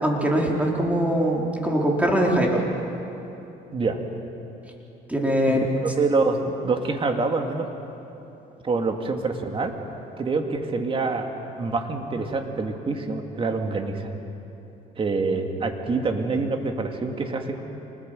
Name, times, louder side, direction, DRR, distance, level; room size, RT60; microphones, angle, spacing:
voice 1, 0.0-2.6 5.1-5.6, equal, 10° right, -1 dB, 4.2 m, -22 dB
voice 2, 6.0-7.7 8.6-9.7 10.2-11.3 11.6-14.1 15.0-17.6, right 3 dB, 30° right, 4 dB, 2.4 m, -26 dB
26.5 x 19.5 x 7.9 m, 3.0 s
cardioid pair, 110°, 17 cm